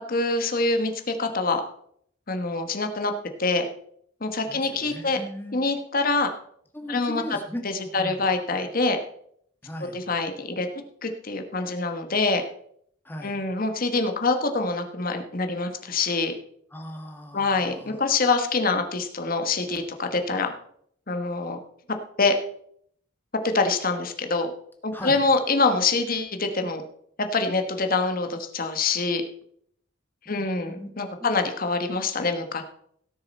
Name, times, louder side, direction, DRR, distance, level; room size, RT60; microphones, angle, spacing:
voice 1, 0.1-1.6 2.3-3.1 3.4-3.7 4.2-5.2 5.5-6.3 6.9-7.2 7.6-9.0 9.9-10.7 11.0-12.4 13.2-16.3 17.3-20.5 21.1-21.6 22.2-22.3 23.4-24.5 24.8-26.8 27.2-29.2 30.3-32.6, left 3 dB, 45° left, 6 dB, 1.3 m, -25 dB
voice 2, 4.5-5.7 6.7-8.2 9.6-10.0 13.1-13.4 16.7-18.0 24.9-25.2 30.3-30.9 31.2-31.3, equal, 10° left, 3 dB, 1.7 m, -38 dB
17.0 x 6.7 x 4.2 m, 0.66 s
head